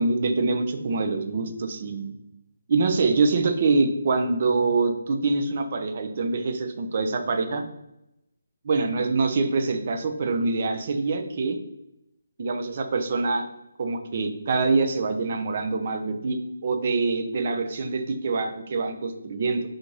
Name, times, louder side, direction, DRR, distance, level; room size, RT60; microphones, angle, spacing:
voice 1, 0.0-2.1 2.7-7.6 8.6-11.6 12.4-13.5 13.8-19.6, right 3 dB, 40° right, 6 dB, 0.5 m, -25 dB
3.9 x 2.5 x 4.5 m, 0.87 s
hypercardioid pair, 165°, 0 cm